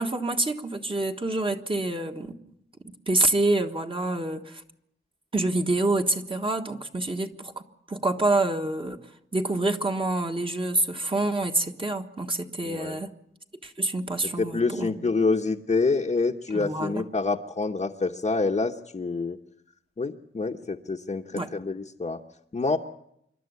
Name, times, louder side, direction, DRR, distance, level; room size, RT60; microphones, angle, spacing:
voice 1, 0.0-2.3 3.1-4.6 5.3-7.5 7.9-9.0 9.3-13.1 13.6-15.0 16.5-17.0 21.3-21.5, right 2 dB, 25° right, 4 dB, 1.5 m, -27 dB
voice 2, 12.6-13.0 14.4-19.4 20.0-22.2 22.5-22.8, left 3 dB, 35° left, 0 dB, 1.0 m, -27 dB
26.5 x 12.0 x 9.5 m, 0.77 s
wide cardioid pair, 130°, 21 cm